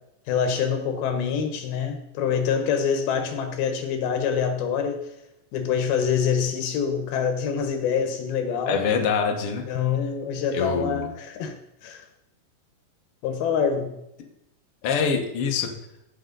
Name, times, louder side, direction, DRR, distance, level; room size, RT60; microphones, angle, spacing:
voice 1, 0.3-5.0 5.5-8.8 9.7-11.6 11.8-12.0 13.2-13.9, left 7 dB, 80° left, 6 dB, 3.1 m, -25 dB
voice 2, 8.7-9.7 10.5-11.1 14.8-15.7, left 6 dB, 60° left, 3 dB, 1.5 m, -24 dB
14.5 x 6.6 x 4.0 m, 0.84 s
omnidirectional pair, 4.3 m